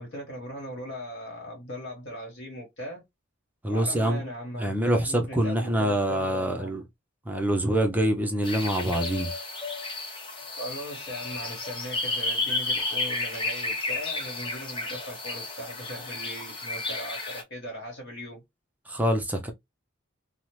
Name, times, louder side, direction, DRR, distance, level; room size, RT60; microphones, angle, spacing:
voice 1, 0.0-3.0 3.7-6.7 10.6-18.4, equal, 55° left, 1.2 m, -39 dB
voice 2, 3.6-4.2 4.6-6.8 7.3-9.3 18.9-19.5, right 1 dB, 10° right, 0.4 m, -25 dB
sound 1, 8.4-17.4, left 2 dB, 25° left, 0.7 m, -32 dB
2.8 x 2.0 x 3.0 m
head